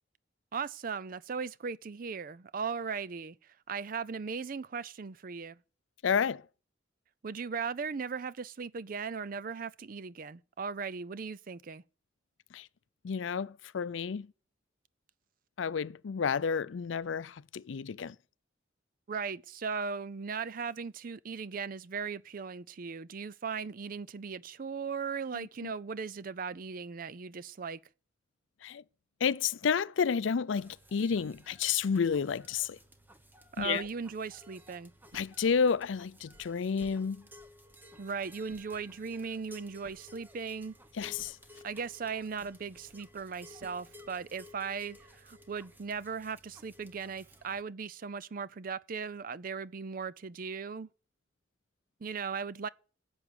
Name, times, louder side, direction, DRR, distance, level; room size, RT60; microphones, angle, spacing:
voice 1, 0.5-3.4 3.7-5.6 7.2-11.8 19.1-27.8 33.6-34.9 38.0-40.7 41.6-50.9 52.0-52.7, right 5 dB, 50° right, 0.5 m, -38 dB
voice 2, 6.0-6.4 12.5-12.6 13.0-14.3 15.6-18.1 25.6-25.7 28.6-28.8 29.2-32.8 33.6-33.8 35.1-37.2 41.0-41.3, left 6 dB, 85° left, 0.5 m, -30 dB
sound 1, 30.6-47.6, left 1 dB, 10° right, 1.0 m, -56 dB
sound 2, 35.1-44.3, right 1 dB, 80° right, 4.1 m, -61 dB
11.0 x 7.1 x 8.1 m
head